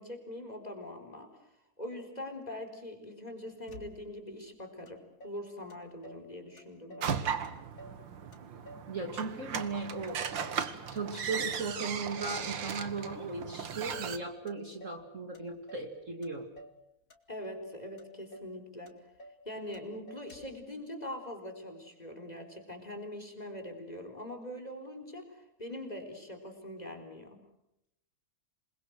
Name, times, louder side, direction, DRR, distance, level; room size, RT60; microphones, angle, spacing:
voice 1, 0.0-7.3 17.3-18.9 19.4-27.4, left 1 dB, 20° left, 4 dB, 4.1 m, -43 dB
Motor vehicle (road), 3.7-4.3 4.9-5.0 5.2-6.3 6.6-7.2 7.4-8.0 8.3-9.8 10.1-10.7 11.0-11.5 11.8-12.4 12.7-13.3 13.6-14.2 14.5-15.1 15.3-15.9 16.2-16.8 17.1-17.7 18.0-18.1 18.3-18.6 18.9-19.4 19.7-19.8 20.1-20.6, equal, 40° left, 2.6 m, -52 dB
sound 1, 7.0-14.2, right 7 dB, 65° right, 2.2 m, -37 dB
voice 2, 8.9-10.3 10.9-16.5, right 3 dB, 35° right, 4 dB, 2.6 m, -37 dB
27.5 x 21.5 x 8.0 m, 0.80 s
omnidirectional pair, 2.3 m